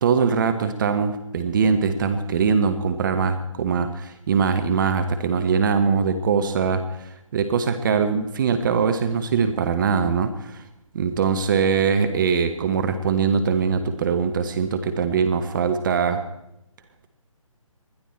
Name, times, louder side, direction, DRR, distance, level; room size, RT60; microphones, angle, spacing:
voice 1, 0.0-10.6 10.9-16.2, right 6 dB, 35° right, 8 dB, 1.1 m, -22 dB
20.5 x 12.0 x 4.4 m, 0.85 s
figure-of-eight pair, 145°, 18 cm